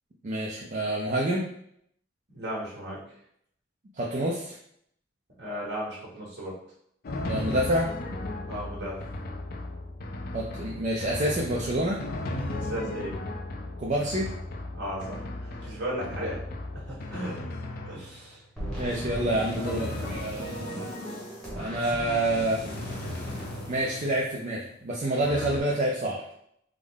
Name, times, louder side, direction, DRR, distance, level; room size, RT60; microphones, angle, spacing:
voice 1, 0.2-1.5 3.9-4.6 7.3-7.9 10.3-12.0 13.8-14.3 16.2-16.3 18.8-20.9 21.6-22.6 23.7-26.2, right 1 dB, 35° right, -3 dB, 0.4 m, -28 dB
voice 2, 2.3-3.0 5.4-6.5 8.5-9.0 12.5-13.2 14.7-16.4 16.7-17.4 17.8-18.4 19.5-20.2, equal, 55° right, -6 dB, 1.4 m, -36 dB
Drum, 7.0-18.4 19.6-21.6 22.6-24.1 25.2-25.6, left 2 dB, 45° left, 0.4 m, -36 dB
sound 1, 18.6-24.7, equal, 5° left, 0.9 m, -38 dB
3.6 x 2.0 x 3.5 m, 0.70 s
head